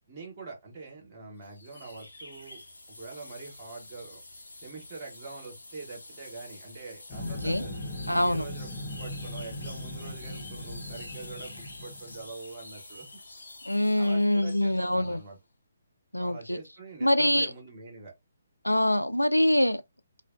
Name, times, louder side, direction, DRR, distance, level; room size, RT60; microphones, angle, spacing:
voice 1, 0.1-2.6 2.9-4.2 4.6-7.7 8.0-13.1 14.0-15.4 16.2-18.1, right 4 dB, 30° right, 1.2 m, -44 dB
sound 1, 1.4-15.3, left 2 dB, 70° left, 0.8 m, -47 dB
sound 2, 7.1-12.3, left 1 dB, 25° left, 0.7 m, -39 dB
voice 2, 7.2-7.6 8.1-8.4 13.7-15.2 16.1-16.6 17.0-17.5 18.6-19.8, left 1 dB, 90° left, 0.3 m, -24 dB
2.4 x 2.2 x 2.5 m
figure-of-eight pair, 140°, 0 cm